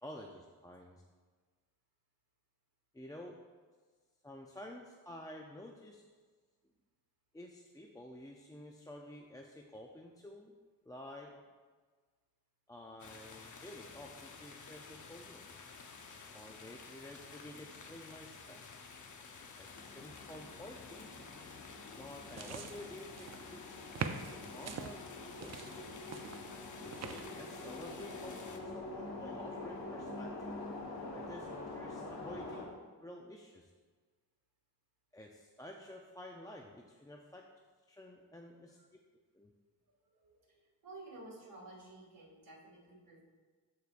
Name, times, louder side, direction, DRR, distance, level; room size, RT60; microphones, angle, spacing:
voice 1, 0.0-1.0 2.9-3.4 4.2-6.0 7.3-10.6 10.8-11.3 12.7-15.5 16.3-18.7 19.6-21.1 21.9-23.7 24.5-25.0 25.4-25.9 26.8-30.5 31.1-33.7 35.1-37.5 37.9-39.0 39.3-39.5, left 1 dB, 10° left, 0 dB, 0.4 m, -51 dB
sound 1, 13.0-28.6, left 5 dB, 50° left, 0.8 m, -52 dB
sound 2, 19.6-32.6, left 2 dB, 85° left, 1.4 m, -46 dB
sound 3, 22.1-23.5 23.9-24.9 25.4-27.4, right 6 dB, 45° right, 0.5 m, -44 dB
voice 2, 40.2-40.6 40.8-43.2, right 2 dB, 60° right, -3 dB, 2.3 m, -53 dB
13.5 x 4.7 x 2.5 m, 1.5 s
wide cardioid pair, 105°, 38 cm